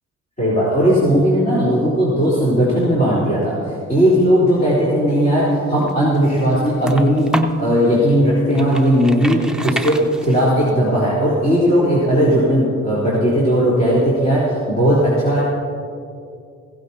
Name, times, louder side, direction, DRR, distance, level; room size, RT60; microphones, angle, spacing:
voice 1, 0.4-15.4, equal, 30° left, -9 dB, 3.9 m, -17 dB
sound 1, 5.6-7.7 8.2-10.7, right 1 dB, ahead, 0.7 m, -27 dB
16.0 x 15.5 x 2.9 m, 2.4 s
cardioid pair, 90°, 30 cm